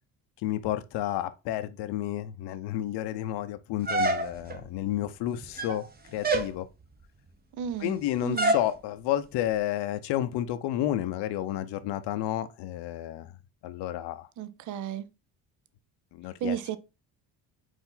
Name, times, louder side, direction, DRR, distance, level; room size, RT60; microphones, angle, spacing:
voice 1, 0.4-6.7 7.8-13.4 13.6-14.3 16.1-16.6, left 13 dB, 70° left, 0.7 m, -31 dB
sound 1, 3.9-4.6 5.4-5.9 6.2-6.5 8.4-8.7, right 2 dB, 20° right, 0.8 m, -26 dB
voice 2, 7.5-8.0 8.2-8.5 14.4-15.1 16.4-16.8, right 9 dB, 45° right, 0.5 m, -33 dB
4.5 x 2.6 x 3.8 m
supercardioid pair, 70°, 43 cm